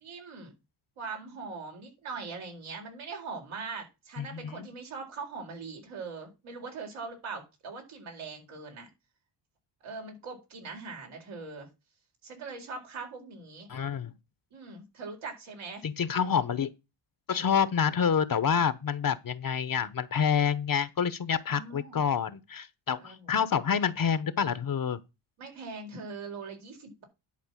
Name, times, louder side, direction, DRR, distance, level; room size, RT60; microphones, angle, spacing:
voice 1, 0.0-0.5 1.0-8.9 9.8-11.7 12.2-13.7 14.5-15.8 21.5-22.0 23.0-23.4 25.4-27.0, right 4 dB, 80° right, 4.3 m, -41 dB
voice 2, 4.2-4.7 13.7-14.1 15.8-16.7 17.3-25.0, left 7 dB, 45° left, 1.0 m, -28 dB
10.5 x 4.4 x 7.3 m
cardioid pair, 80°, 48 cm